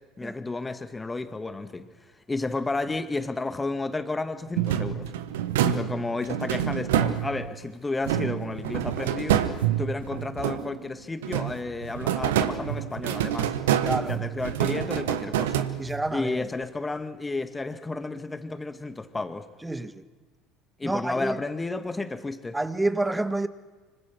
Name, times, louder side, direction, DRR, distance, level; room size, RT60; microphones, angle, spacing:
voice 1, 0.2-1.9 2.3-5.1 5.6-9.5 9.8-13.5 14.0-15.7 16.1-19.5 20.8-22.6, left 3 dB, 15° left, 2.2 m, -32 dB
sound 1, 4.6-7.6 8.0-10.9 11.2-16.2, right 10 dB, 75° right, 1.3 m, -27 dB
voice 2, 13.8-14.2 15.8-16.4 19.6-19.9 20.8-21.4 22.5-23.5, right 2 dB, 10° right, 1.5 m, -28 dB
25.5 x 25.0 x 6.2 m
hypercardioid pair, 65°, 0 cm